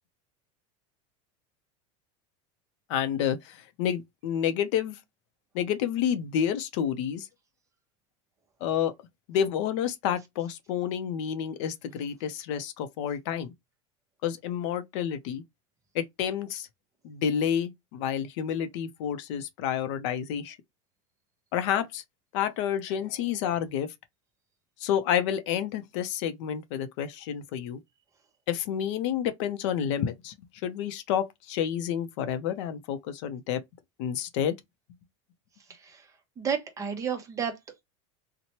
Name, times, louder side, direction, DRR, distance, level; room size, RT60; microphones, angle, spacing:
voice 1, 2.9-5.0 5.5-7.3 8.6-8.9 9.3-13.5 14.2-15.4 15.9-16.7 17.0-20.6 21.5-22.0 22.3-23.9 24.8-27.8 28.5-30.4 30.6-33.6 34.0-34.6, left 9 dB, 65° left, 0.6 m, -29 dB
voice 2, 35.7-36.1 36.4-37.8, right 7 dB, 20° right, 0.7 m, -32 dB
2.9 x 2.1 x 2.8 m
supercardioid pair, 145°, 16 cm